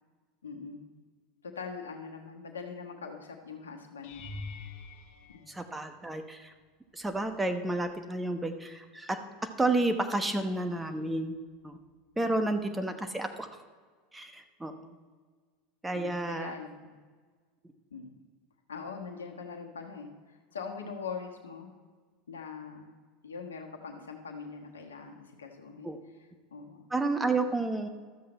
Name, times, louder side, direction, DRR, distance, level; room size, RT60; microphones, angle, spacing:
voice 1, 0.4-0.9 1.4-4.2 5.3-5.5 12.7-13.0 15.9-16.9 17.9-18.0 18.7-21.7 22.3-22.9 23.2-25.9 26.5-26.9, left 5 dB, 85° left, 3 dB, 1.3 m, -42 dB
sound 1, 4.0-6.3 7.0-7.5 7.8-8.0 12.3-12.4, left 3 dB, 65° left, 1.3 m, -45 dB
voice 2, 5.5-6.5 6.9-9.2 9.6-11.3 11.6-11.8 12.2-13.5 14.1-14.9 15.8-16.5 25.8-26.0 26.9-27.9, right 2 dB, 10° right, 7 dB, 1.0 m, -31 dB
12.5 x 7.7 x 4.3 m, 1.5 s
hypercardioid pair, 85°, 0 cm